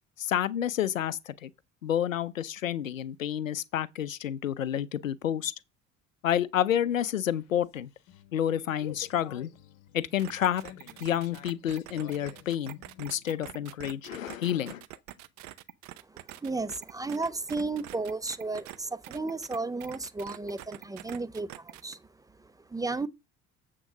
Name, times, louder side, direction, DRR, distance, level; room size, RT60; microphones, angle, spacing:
voice 1, 0.2-1.5 1.8-5.5 6.2-7.9 8.3-9.5 9.9-10.6 11.0-14.8, left 10 dB, 85° left, 0.5 m, -29 dB
sound 1, 6.9-13.7, left 12 dB, 60° left, 1.0 m, -52 dB
sound 2, 10.2-18.8 19.0-21.9, right 15 dB, 45° right, 0.7 m, -45 dB
voice 2, 16.1-23.1, right 3 dB, 10° right, 0.5 m, -34 dB
7.7 x 3.7 x 6.4 m
figure-of-eight pair, 60°, 39 cm